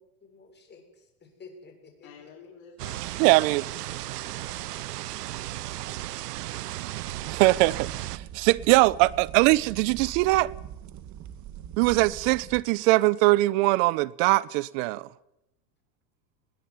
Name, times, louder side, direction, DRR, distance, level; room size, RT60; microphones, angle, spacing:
voice 1, 0.0-2.3, left 4 dB, 20° left, 6.8 m, -51 dB
voice 2, 2.0-6.0, left 6 dB, 50° left, 4.9 m, -53 dB
sound 1, 2.8-8.2, right 16 dB, 90° right, 0.9 m, -35 dB
voice 3, 3.2-3.6 7.2-10.5 11.8-15.1, right 20 dB, 55° right, 1.0 m, -22 dB
sound 2, 7.1-12.6, right 10 dB, 40° right, 2.0 m, -42 dB
21.0 x 16.5 x 9.6 m
supercardioid pair, 125°, 45 cm